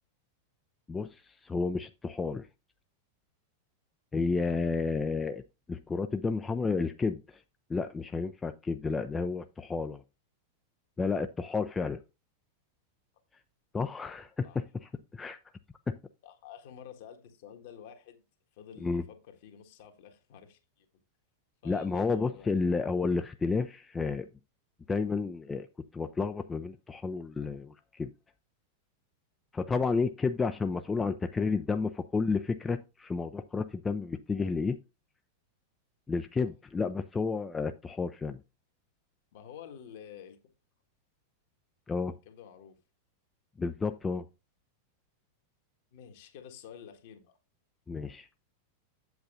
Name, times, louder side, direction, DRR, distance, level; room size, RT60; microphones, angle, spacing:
voice 1, 0.9-2.5 4.1-5.4 5.7-7.4 7.7-10.0 11.0-12.0 13.7-15.4 18.8-19.0 21.6-24.3 24.9-25.7 25.9-28.1 29.5-34.8 36.1-38.4 41.9-42.1 43.6-44.2 47.9-48.3, left 4 dB, 15° left, 0.4 m, -31 dB
voice 2, 16.2-18.2 18.5-20.9 21.6-22.6 36.4-36.5 39.3-40.4 42.2-42.8 45.9-47.4, left 8 dB, 50° left, 1.5 m, -50 dB
8.6 x 8.1 x 2.5 m
figure-of-eight pair, 90°, 0 cm